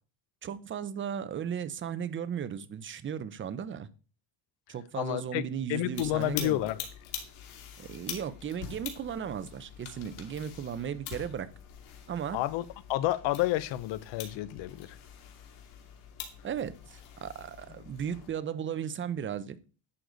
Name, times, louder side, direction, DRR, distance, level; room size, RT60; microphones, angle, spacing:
voice 1, 0.4-3.9 4.7-6.6 7.8-11.5 12.1-12.4 16.4-19.6, right 8 dB, 25° right, 0.7 m, -36 dB
voice 2, 5.0-5.4 5.7-6.8 12.3-12.6 12.9-15.0, left 15 dB, 65° left, 0.9 m, -30 dB
sound 1, 5.9-18.3, left 8 dB, 80° left, 2.8 m, -45 dB
11.0 x 6.6 x 4.0 m
cardioid pair, 135°, 48 cm